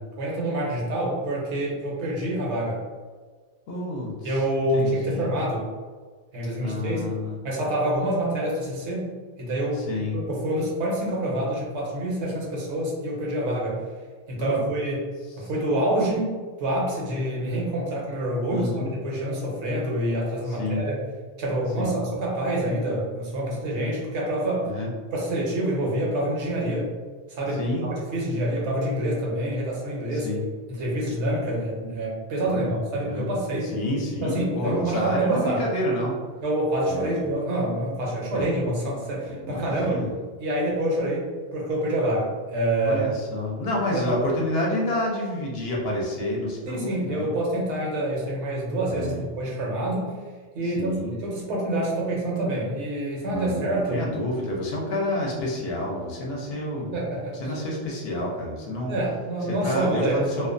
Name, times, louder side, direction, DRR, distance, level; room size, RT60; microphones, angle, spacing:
voice 1, 0.2-2.8 4.2-5.7 6.3-7.1 7.4-9.1 9.4-9.9 10.1-13.8 14.3-15.1 15.4-21.0 21.4-24.7 25.1-26.9 27.3-30.3 30.7-33.7 34.2-35.7 36.4-40.1 40.4-43.0 43.9-44.1 46.7-50.1 50.5-54.0 56.8-57.5 58.9-60.3, right 1 dB, 75° right, -3 dB, 0.9 m, -27 dB
voice 2, 3.7-4.4 4.7-5.3 6.6-7.5 9.7-10.2 14.4-14.7 15.4-15.5 18.5-18.9 20.6-20.8 21.8-22.0 24.7-24.9 27.5-27.9 30.1-30.4 32.4-32.8 33.1-33.3 33.6-36.2 36.9-37.1 38.3-38.4 39.3-40.1 42.9-47.3 48.9-49.2 50.6-51.2 53.3-57.0 57.4-59.0 59.5-60.5, left 1 dB, 65° left, -2 dB, 0.8 m, -29 dB
2.4 x 2.1 x 2.4 m, 1.5 s
omnidirectional pair, 1.2 m